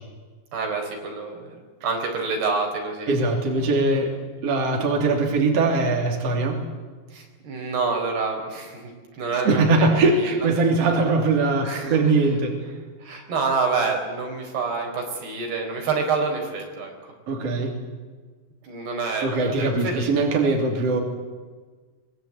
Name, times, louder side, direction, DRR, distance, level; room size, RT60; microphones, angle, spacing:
voice 1, 0.5-1.6 1.8-3.1 7.1-9.6 10.2-10.3 11.6-12.0 13.0-17.1 18.6-20.1, right 4 dB, 75° right, 2 dB, 6.3 m, -27 dB
voice 2, 3.1-4.1 4.4-6.6 9.4-12.6 17.3-17.8 19.2-21.0, right 3 dB, 40° right, 2 dB, 3.8 m, -21 dB
23.5 x 22.0 x 8.7 m, 1.4 s
omnidirectional pair, 4.6 m